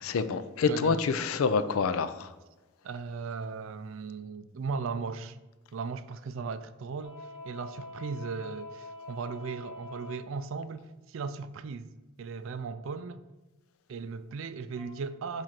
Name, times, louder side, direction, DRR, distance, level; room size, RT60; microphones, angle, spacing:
voice 1, 0.0-2.3, left 5 dB, 75° left, 0.4 m, -27 dB
voice 2, 0.7-1.0 2.8-5.4 5.7-11.9 12.2-13.2 13.9-15.4, right 5 dB, 65° right, 0.4 m, -37 dB
sound 1, 7.0-10.2 14.7-14.8, left 2 dB, 25° left, 2.3 m, -45 dB
7.5 x 2.6 x 5.8 m
head